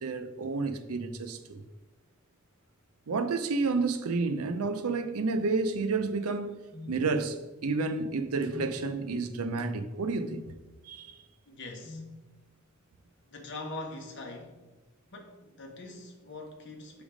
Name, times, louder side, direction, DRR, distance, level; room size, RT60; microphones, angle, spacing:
voice 1, 0.0-1.6 3.1-6.6 6.8-7.4 7.6-10.4 10.8-11.2, right 3 dB, 90° right, 0.5 m, -30 dB
sound 1, 6.7-7.0 8.4-8.8 10.2-10.5 11.8-12.1, left 3 dB, 30° left, 0.6 m, -43 dB
voice 2, 11.5-12.0 13.3-14.6 15.1-17.0, left 2 dB, 55° left, 1.1 m, -42 dB
7.2 x 3.5 x 4.9 m
head